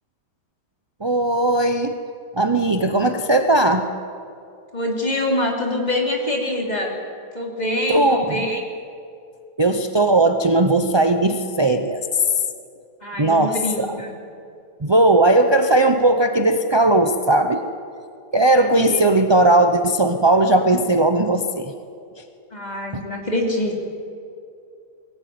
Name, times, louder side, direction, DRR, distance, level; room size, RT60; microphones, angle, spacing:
voice 1, 1.0-2.0 2.3-3.9 7.9-8.4 9.6-12.2 13.2-13.9 14.8-17.6 18.3-21.7 22.9-23.0, right 2 dB, 35° right, 6 dB, 0.4 m, -18 dB
voice 2, 4.7-6.9 7.3-8.6 13.0-14.1 18.6-19.0 22.5-23.8, left 1 dB, 25° left, 0 dB, 3.3 m, -25 dB
21.5 x 17.0 x 9.4 m, 2.5 s
omnidirectional pair, 1.9 m